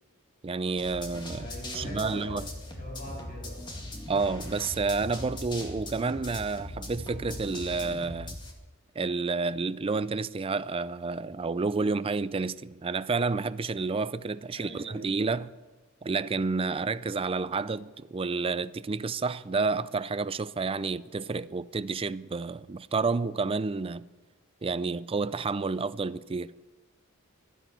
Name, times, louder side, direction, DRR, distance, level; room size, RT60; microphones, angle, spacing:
voice 1, 0.4-1.5 1.7-2.5 4.1-8.4 9.0-15.5 16.0-24.1 24.6-26.5, right 4 dB, 25° right, 0.4 m, -30 dB
sound 1, 0.8-8.5, left 1 dB, 20° left, 2.2 m, -40 dB
voice 2, 1.3-4.0 14.5-15.1, equal, 45° left, 6.7 m, -43 dB
12.5 x 12.0 x 9.2 m
head